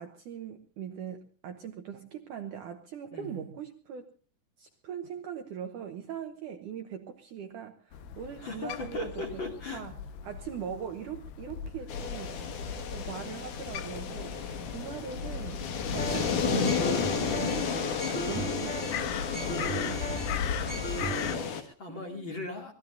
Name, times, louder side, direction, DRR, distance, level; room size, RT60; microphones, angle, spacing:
voice 1, 0.0-4.1 4.6-9.4 9.7-9.9 10.2-12.6 12.9-15.6 15.9-19.1 19.5-19.8 21.9-22.2, right 8 dB, 65° right, 5 dB, 2.1 m, -41 dB
voice 2, 3.1-3.5 8.4-9.8 19.3-20.3 20.9-22.7, left 2 dB, 35° left, 2 dB, 2.6 m, -39 dB
Crow, 7.9-21.4, left 7 dB, 80° left, 3.2 m, -39 dB
sound 1, 11.9-21.6, left 6 dB, 60° left, 2.9 m, -33 dB
sound 2, 15.9-21.3, right 2 dB, 15° left, 0.4 m, -37 dB
25.5 x 18.5 x 2.6 m, 0.40 s
omnidirectional pair, 4.7 m